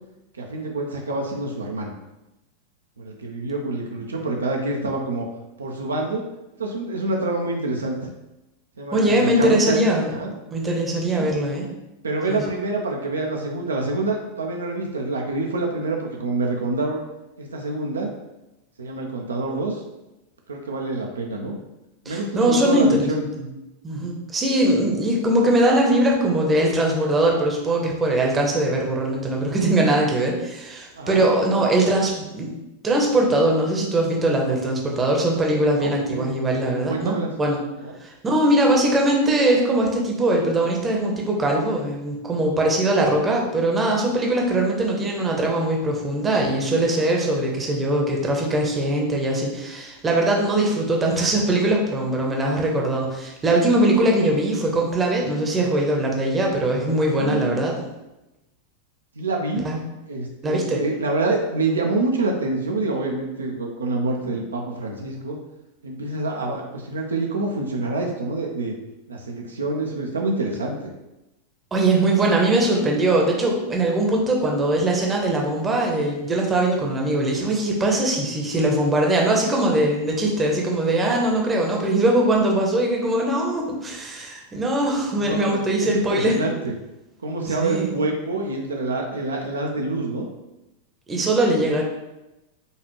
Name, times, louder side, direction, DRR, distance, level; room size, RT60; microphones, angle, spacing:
voice 1, 0.3-1.9 3.0-5.3 5.6-6.2 6.6-8.0 8.8-9.8 10.1-10.3 11.1-11.3 12.0-17.0 17.4-18.1 18.8-19.8 20.5-21.6 22.1-23.2 30.9-31.3 35.7-36.3 36.9-37.3 37.8-37.9 57.2-57.6 59.2-59.7 60.1-65.4 65.8-68.7 69.1-70.9 85.2-86.7 87.2-90.3, right 2 dB, 70° right, 1 dB, 0.5 m, -26 dB
voice 2, 8.9-11.7 12.3-12.5 22.1-23.5 23.8-32.5 32.8-37.6 38.0-57.8 59.6-59.8 60.4-60.8 71.7-86.3 87.5-87.9 91.1-91.8, right 1 dB, 15° right, 0 dB, 0.8 m, -21 dB
5.3 x 2.4 x 3.1 m, 0.96 s
figure-of-eight pair, 90°, 0 cm